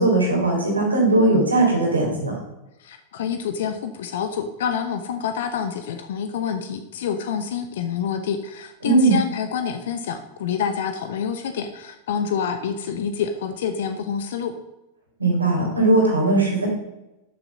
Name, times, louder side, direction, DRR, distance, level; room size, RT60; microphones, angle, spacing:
voice 1, 0.0-2.4 8.8-9.2 15.2-16.7, right 2 dB, 80° right, 0 dB, 3.6 m, -19 dB
voice 2, 2.8-14.5, left 7 dB, 60° left, 8 dB, 0.8 m, -27 dB
12.0 x 6.9 x 5.4 m, 0.98 s
figure-of-eight pair, 90°, 0 cm